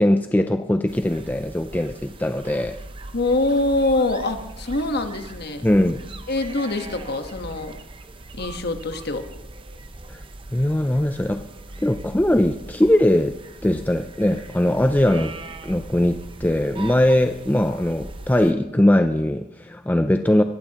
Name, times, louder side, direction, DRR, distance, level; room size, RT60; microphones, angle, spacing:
voice 1, 0.0-2.8 5.6-6.0 10.1-10.2 10.5-11.4 11.8-13.3 13.6-15.4 15.6-20.4, left 1 dB, 10° left, 8 dB, 0.4 m, -20 dB
sound 1, 0.9-18.5, right 2 dB, 25° right, 0.8 m, -40 dB
voice 2, 3.1-5.7 6.3-7.8 8.4-9.3, left 2 dB, 50° left, 6 dB, 1.3 m, -24 dB
22.0 x 15.5 x 3.0 m, 0.90 s
head